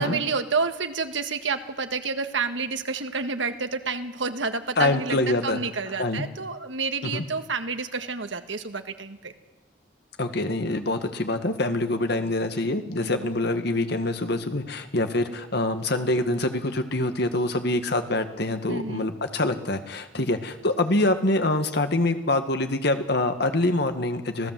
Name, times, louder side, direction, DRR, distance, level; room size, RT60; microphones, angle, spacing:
voice 1, 0.0-9.3 13.0-13.3 18.7-19.1 20.2-20.3, right 4 dB, 75° right, 8 dB, 1.7 m, -29 dB
voice 2, 4.8-5.6 6.0-6.3 7.0-7.3 10.2-24.5, left 2 dB, 60° left, 8 dB, 1.9 m, -25 dB
26.5 x 17.0 x 7.7 m, 1.1 s
head